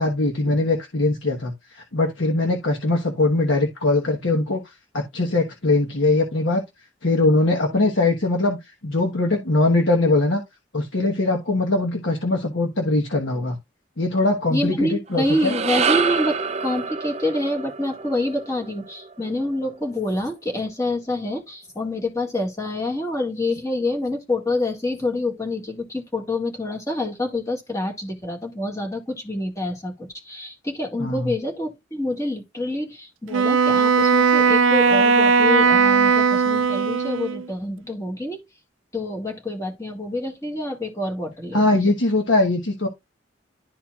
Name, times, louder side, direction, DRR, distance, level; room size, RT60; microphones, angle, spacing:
voice 1, 0.0-4.6 4.9-6.6 7.0-8.6 8.8-10.4 10.7-13.6 14.0-15.6 31.0-31.3 41.5-42.9, left 2 dB, 75° left, 1.3 m, -21 dB
voice 2, 14.5-38.4 38.9-41.9, left 1 dB, 15° left, 1.8 m, -27 dB
sound 1, 15.1-19.6, right 5 dB, 35° right, 0.6 m, -27 dB
Wind instrument woodwind instrument, 33.3-37.5, right 5 dB, 90° right, 0.5 m, -18 dB
12.0 x 4.3 x 2.4 m
head